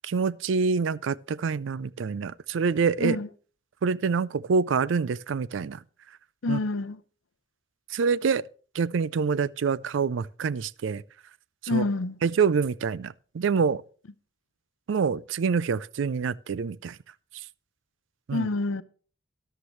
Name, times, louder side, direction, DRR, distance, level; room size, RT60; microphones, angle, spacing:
voice 1, 0.0-3.2 3.8-5.8 6.5-6.6 7.9-8.4 8.7-11.0 11.6-11.8 12.2-13.8 14.9-17.0 18.3-18.5, right 5 dB, 70° right, 0.4 m, -26 dB
voice 2, 6.4-7.0 11.7-12.2 18.3-18.8, left 2 dB, 85° left, 0.7 m, -27 dB
13.0 x 11.0 x 3.1 m
head